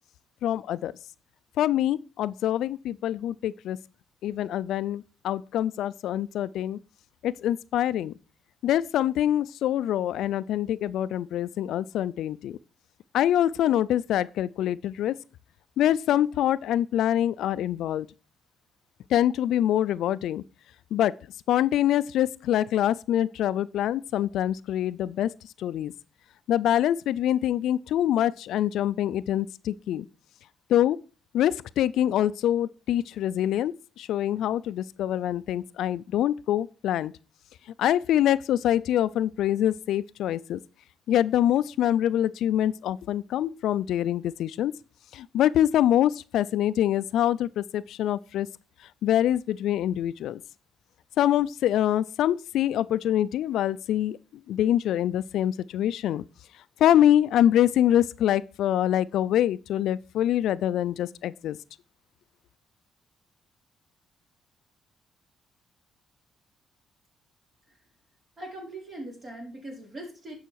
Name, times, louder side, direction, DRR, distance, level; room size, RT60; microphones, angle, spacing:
voice 1, 0.4-0.9 1.6-3.8 4.2-6.8 7.2-8.1 8.6-12.6 13.1-15.1 15.8-18.1 19.1-20.4 20.9-21.1 21.5-25.3 25.6-25.9 26.5-30.0 30.7-31.0 31.3-37.1 37.8-40.6 41.1-44.7 45.1-48.5 49.0-50.4 51.2-54.2 54.5-56.2 56.8-61.6, left 11 dB, 80° left, 0.4 m, -25 dB
voice 2, 68.4-70.3, right 1 dB, 35° right, 4.7 m, -40 dB
11.0 x 5.6 x 4.7 m
cardioid pair, 90°, 0 cm